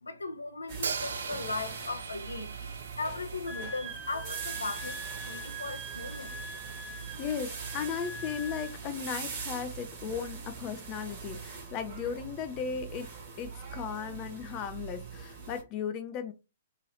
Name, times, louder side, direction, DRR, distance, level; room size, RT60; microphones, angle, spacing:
voice 1, 0.0-6.3, left 3 dB, 75° left, 0.6 m, -38 dB
sound 1, 0.7-15.6, right 5 dB, 35° right, 1.3 m, -42 dB
Hi-hat, 0.8-4.8, right 5 dB, 60° right, 0.4 m, -40 dB
Wind instrument woodwind instrument, 3.5-8.8, right 2 dB, 15° right, 0.9 m, -43 dB
voice 2, 6.6-16.3, left 7 dB, 30° left, 0.4 m, -36 dB
3.0 x 2.7 x 2.8 m
figure-of-eight pair, 115°, 0 cm